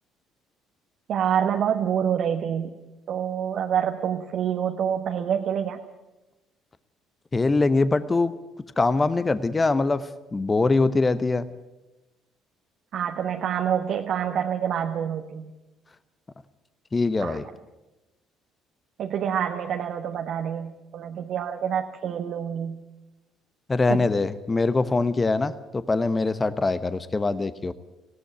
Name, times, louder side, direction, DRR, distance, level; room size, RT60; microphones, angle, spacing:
voice 1, 1.1-2.7 3.1-5.8 12.9-15.5 17.2-17.4 19.0-22.8 23.9-24.0, right 8 dB, 55° right, 4 dB, 1.3 m, -27 dB
voice 2, 7.3-8.3 8.8-11.5 16.9-17.5 23.7-27.7, left 3 dB, 25° left, 14 dB, 1.0 m, -23 dB
19.5 x 16.5 x 9.1 m, 1.0 s
figure-of-eight pair, 50°, 0 cm